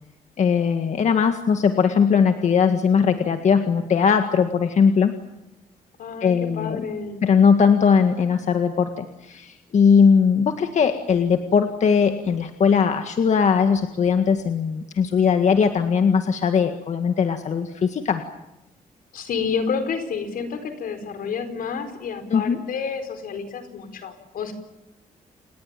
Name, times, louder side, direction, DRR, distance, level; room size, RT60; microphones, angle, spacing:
voice 1, 0.4-5.2 6.2-6.8 7.2-18.2 22.3-22.6, left 6 dB, 55° left, 6 dB, 1.8 m, -19 dB
voice 2, 6.0-7.2 19.1-24.5, left 5 dB, 80° left, 9 dB, 4.6 m, -29 dB
29.5 x 19.5 x 9.1 m, 0.93 s
cardioid pair, 130°, 14 cm